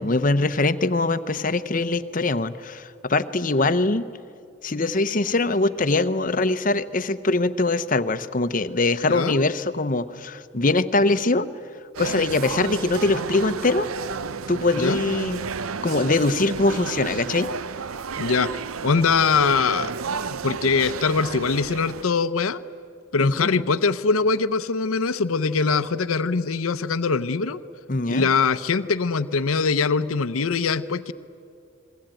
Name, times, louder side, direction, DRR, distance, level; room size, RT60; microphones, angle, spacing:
voice 1, 0.0-4.0 4.6-11.5 12.0-13.9 14.5-15.4 15.8-17.5 23.2-23.5 27.9-28.3, left 2 dB, 40° left, 13 dB, 0.8 m, -22 dB
voice 2, 9.1-9.5 14.8-15.0 18.2-18.5 18.8-19.9 20.4-22.6 23.1-27.6 28.1-31.1, left 4 dB, 90° left, 12 dB, 0.7 m, -22 dB
sound 1, 11.9-22.0, right 5 dB, 85° right, 0.7 m, -32 dB
29.5 x 21.5 x 9.1 m, 2.5 s
head